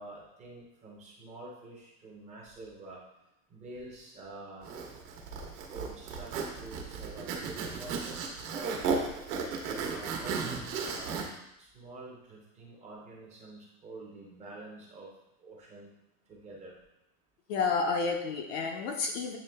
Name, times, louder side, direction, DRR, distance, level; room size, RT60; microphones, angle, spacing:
voice 1, 0.0-3.0 3.5-4.7 5.7-8.9 9.9-11.2 11.6-15.1 15.4-15.9 16.3-16.8, right 2 dB, 15° right, -3 dB, 0.6 m, -47 dB
Zipper (clothing), 4.6-11.2, right 5 dB, 80° right, 1.3 m, -35 dB
voice 2, 17.5-19.4, left 4 dB, 40° left, 3 dB, 0.5 m, -30 dB
8.4 x 3.3 x 3.4 m, 0.88 s
supercardioid pair, 180°, 46 cm